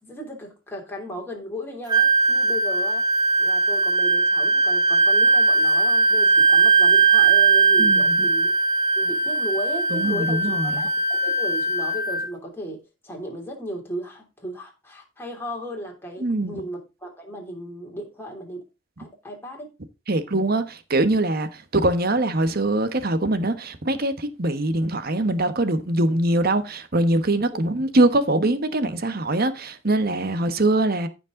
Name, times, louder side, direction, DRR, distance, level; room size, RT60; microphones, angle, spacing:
voice 1, 0.0-3.1 3.4-8.5 8.9-18.6 19.0-19.7, equal, 10° left, 3.1 m, -35 dB
Wind instrument woodwind instrument, 1.9-12.3, right 3 dB, 20° right, 1.1 m, -19 dB
voice 2, 7.8-8.3 9.9-10.8 16.2-16.6 20.1-31.1, right 2 dB, 50° right, 1.2 m, -23 dB
15.0 x 5.3 x 3.8 m
head